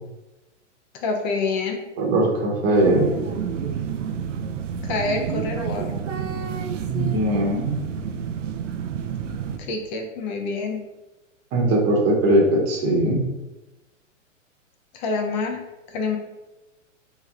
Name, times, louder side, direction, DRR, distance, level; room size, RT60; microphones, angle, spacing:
voice 1, 0.9-1.8 4.8-6.0 9.6-10.8 14.9-15.6 15.9-16.2, left 3 dB, 35° left, 2 dB, 0.7 m, -27 dB
voice 2, 2.0-3.1 6.9-7.8 11.5-13.2, right 1 dB, 35° right, -3 dB, 1.0 m, -20 dB
sound 1, 2.7-9.6, right 7 dB, 70° right, 0.5 m, -29 dB
3.1 x 3.1 x 3.7 m, 1.0 s
hypercardioid pair, 115°, 39 cm